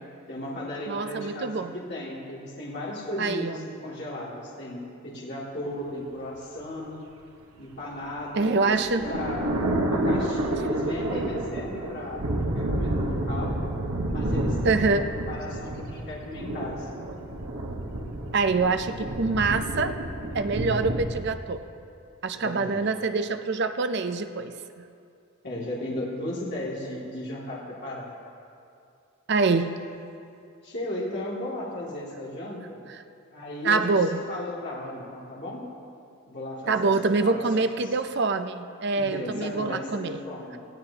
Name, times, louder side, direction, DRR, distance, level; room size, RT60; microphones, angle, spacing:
voice 1, 0.3-7.0 7.6-9.5 9.9-13.6 14.1-16.9 22.3-22.8 25.4-28.1 30.6-32.8 33.3-35.7 36.2-37.6 38.9-40.6, left 1 dB, 50° left, -6 dB, 2.5 m, -36 dB
voice 2, 0.9-1.7 3.2-3.6 8.4-9.1 14.6-15.1 18.3-20.0 20.3-21.6 22.2-24.9 29.3-29.7 32.9-33.0 33.6-34.2 36.7-40.2, right 3 dB, 50° right, 9 dB, 0.5 m, -25 dB
sound 1, 8.1-21.2, right 1 dB, 80° right, 1.2 m, -29 dB
18.0 x 15.0 x 2.9 m, 2.5 s
head